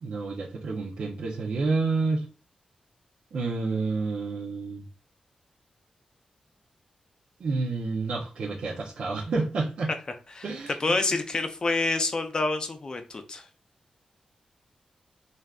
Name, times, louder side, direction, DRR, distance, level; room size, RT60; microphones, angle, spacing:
voice 1, 0.0-2.2 3.3-4.8 7.4-9.9 10.4-10.8, right 3 dB, 75° right, -5 dB, 0.6 m, -29 dB
voice 2, 10.8-13.5, left 3 dB, 35° left, 7 dB, 0.5 m, -27 dB
3.4 x 2.5 x 2.4 m, 0.35 s
wide cardioid pair, 135°, 2 cm